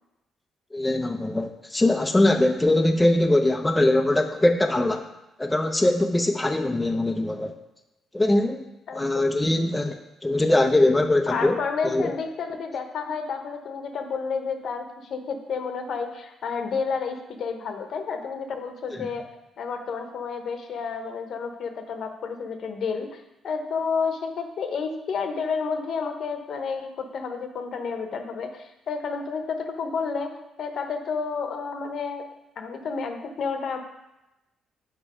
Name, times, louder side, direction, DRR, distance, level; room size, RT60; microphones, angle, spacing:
voice 1, 0.7-5.1 5.4-7.5 8.1-8.7 8.9-10.0 10.2-11.6 11.8-12.1 19.0-19.1, left 1 dB, 10° left, 4 dB, 0.7 m, -22 dB
voice 2, 8.9-9.2 11.3-19.3 19.6-32.3 32.6-33.8, left 5 dB, 65° left, 5 dB, 1.0 m, -30 dB
6.8 x 5.6 x 5.0 m, 0.95 s
cardioid pair, 90°, 0 cm